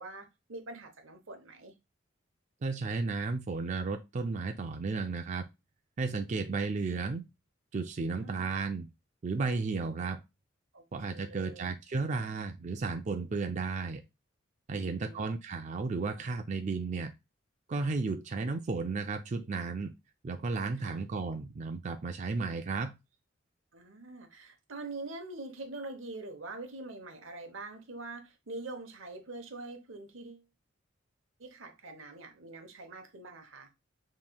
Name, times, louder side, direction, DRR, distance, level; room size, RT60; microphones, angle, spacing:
voice 1, 0.0-1.7 8.1-8.5 10.7-11.7 14.7-15.3 20.8-21.0 23.7-30.5 31.4-33.7, right 2 dB, 90° right, 0.9 m, -44 dB
voice 2, 2.6-5.5 6.0-7.3 7.7-8.9 9.2-10.2 10.9-14.0 14.7-17.1 17.7-19.9 20.2-22.9, right 4 dB, 40° right, 0.4 m, -33 dB
5.4 x 3.1 x 2.2 m
head